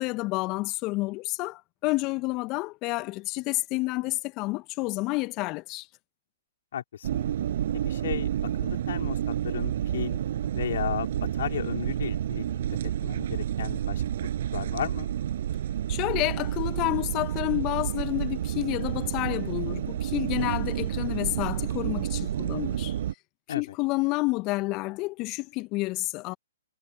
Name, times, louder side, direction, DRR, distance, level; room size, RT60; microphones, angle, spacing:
voice 1, 0.0-5.9 15.9-23.0 23.5-26.3, left 23 dB, 30° left, 1.7 m, -29 dB
voice 2, 6.7-7.3 7.8-8.3 8.6-10.2 10.5-11.1 11.3-12.4 13.0-14.0 14.5-15.1 23.5-23.6, left 9 dB, 60° left, 5.1 m, -34 dB
sound 1, 7.0-23.1, right 11 dB, 55° right, 7.7 m, -30 dB
figure-of-eight pair, 120°, 0 cm